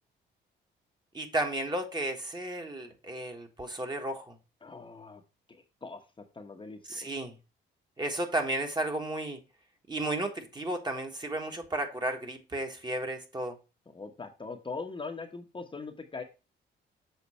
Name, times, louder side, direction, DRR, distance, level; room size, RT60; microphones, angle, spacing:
voice 1, 1.1-4.4 6.8-7.4 8.0-9.4 9.9-13.6, right 1 dB, 20° right, 1.4 m, -33 dB
voice 2, 4.6-5.2 5.5-7.0 13.9-16.2, left 4 dB, 25° left, 1.0 m, -41 dB
7.0 x 3.9 x 4.2 m
cardioid pair, 90°, 20 cm